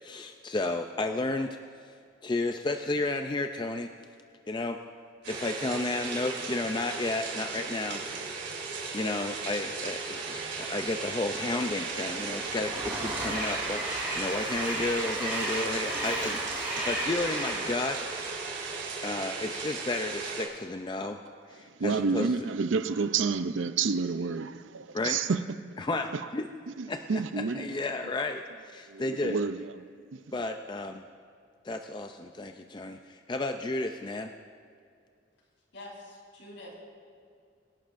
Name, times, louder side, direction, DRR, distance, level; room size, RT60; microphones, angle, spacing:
voice 1, 0.0-1.6 2.2-3.9 4.5-4.8 5.3-8.0 8.9-18.0 19.0-21.2 21.5-22.3 24.9-25.2 25.8-26.5 26.9-29.4 30.3-31.0 31.6-34.3, left 2 dB, 25° left, 0.4 m, -32 dB
sound 1, 5.2-20.4, right 4 dB, 70° right, 2.9 m, -36 dB
Train, 11.6-19.1, right 1 dB, 10° right, 3.5 m, -35 dB
voice 2, 21.8-25.4 26.8-27.7 28.9-29.7, right 5 dB, 90° right, 0.5 m, -29 dB
voice 3, 35.7-36.7, left 1 dB, 75° left, 4.0 m, -46 dB
25.5 x 11.5 x 2.6 m
head